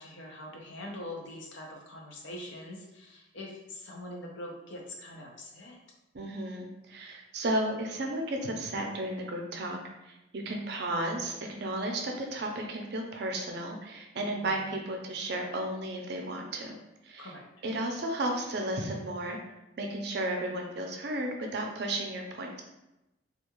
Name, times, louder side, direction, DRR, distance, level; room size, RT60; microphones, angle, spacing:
voice 1, 0.0-5.8 14.3-14.6 17.2-17.5, left 1 dB, 80° left, 0 dB, 0.6 m, -43 dB
voice 2, 6.1-16.8 17.0-17.3 17.6-19.4 19.8-22.6, right 1 dB, 60° right, 2 dB, 0.4 m, -33 dB
2.4 x 2.2 x 2.9 m, 0.94 s
head